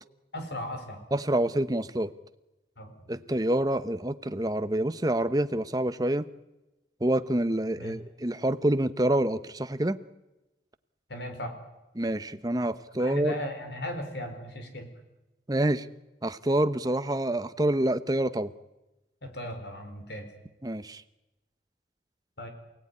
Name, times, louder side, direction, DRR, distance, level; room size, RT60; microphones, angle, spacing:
voice 1, 0.3-1.0 2.8-2.9 7.8-7.9 11.1-11.5 13.0-14.9 19.2-20.3 22.4-22.5, left 1 dB, 75° left, 6 dB, 4.5 m, -36 dB
voice 2, 1.1-2.1 3.1-6.3 7.0-10.0 12.0-13.4 15.5-15.9 16.2-18.5 20.6-21.0, right 1 dB, 20° right, 12 dB, 0.8 m, -27 dB
28.0 x 17.5 x 9.7 m, 1.0 s
head